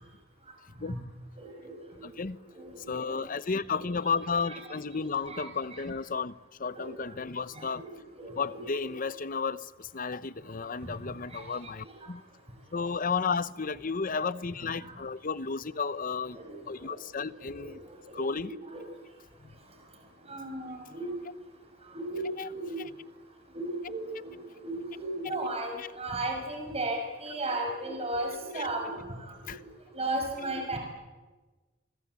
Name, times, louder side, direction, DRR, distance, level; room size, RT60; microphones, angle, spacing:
voice 1, 1.4-1.7 2.5-3.1 3.7-4.1 4.5-4.6 5.3-5.8 6.7-6.9 7.7-7.9 8.2-8.6 10.8-10.9 11.3-11.4 14.6-14.7 16.3-16.5 16.8-17.0 17.4-17.7 18.1-18.8 20.3-21.1 21.9-22.8 23.5-24.3 24.6-28.8 30.0-30.8, right 2 dB, 35° right, 5.9 m, -35 dB
voice 2, 2.0-2.4 2.9-7.8 8.4-12.2 12.7-16.4 16.7-17.8 18.1-18.5 22.4-22.5 25.8-25.9 28.5-28.6 29.5-29.6, left 5 dB, 45° left, 0.8 m, -33 dB
26.5 x 25.5 x 8.2 m
head